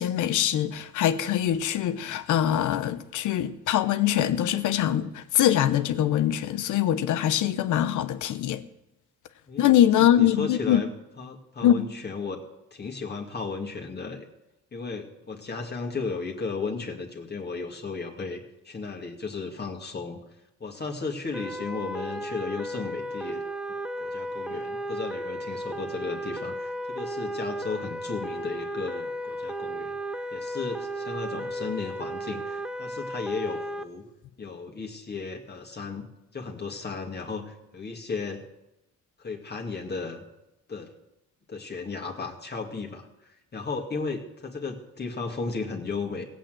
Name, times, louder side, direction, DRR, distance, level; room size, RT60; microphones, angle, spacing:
voice 1, 0.0-8.6 9.6-10.8 11.6-11.9, left 11 dB, 80° left, 1.0 m, -23 dB
voice 2, 10.0-10.9 11.2-14.2 14.7-20.2 20.6-23.4 24.0-30.0 30.3-34.0 34.4-36.1 36.3-38.4 39.2-40.2 40.7-40.9 41.5-46.3, left 4 dB, 35° left, 2.2 m, -35 dB
sound 1, 21.3-33.8, right 1 dB, 5° right, 0.8 m, -34 dB
16.0 x 8.4 x 7.8 m
cardioid pair, 90°, 30 cm